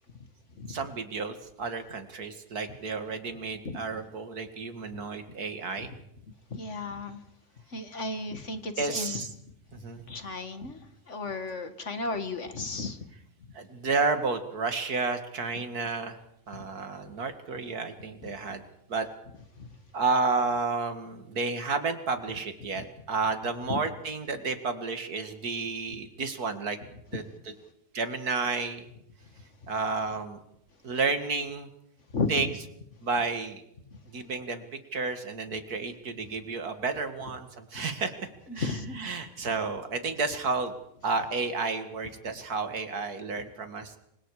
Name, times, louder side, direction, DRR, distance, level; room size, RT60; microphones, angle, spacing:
voice 1, 0.7-5.9 8.8-9.3 9.7-10.0 13.5-16.2 16.5-18.6 18.9-19.1 19.9-26.8 27.1-27.2 27.9-28.9 29.7-30.4 30.8-31.7 32.3-32.5 33.0-33.6 34.1-34.6 34.9-38.1 38.5-40.7 41.0-44.0, right 4 dB, 80° right, 8 dB, 2.6 m, -31 dB
voice 2, 6.5-7.2 7.7-9.3 10.1-13.0 19.6-19.7 22.8-22.9 23.7-23.8 32.1-32.3 33.9-34.0 37.7-37.8 38.5-39.1, left 3 dB, 50° left, 9 dB, 2.1 m, -34 dB
28.0 x 25.0 x 4.9 m, 0.75 s
omnidirectional pair, 1.6 m